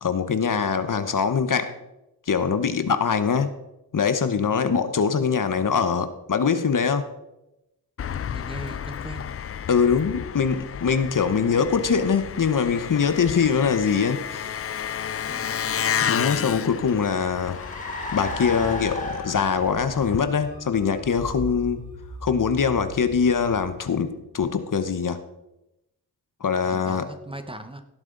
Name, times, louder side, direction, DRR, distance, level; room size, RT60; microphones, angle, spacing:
voice 1, 0.0-1.7 2.3-3.5 3.9-7.1 9.7-14.5 16.0-17.6 18.1-21.8 22.2-25.2 26.4-27.1, left 6 dB, 50° left, 10 dB, 1.0 m, -23 dB
Engine, 8.0-20.2, left 8 dB, 35° left, 0.4 m, -32 dB
voice 2, 8.1-9.3 15.3-15.6 26.6-27.8, right 1 dB, 15° right, 8 dB, 1.0 m, -39 dB
Car, 16.4-24.1, left 1 dB, 20° left, 4.0 m, -37 dB
17.0 x 7.5 x 3.9 m, 0.91 s
cardioid pair, 75°, 39 cm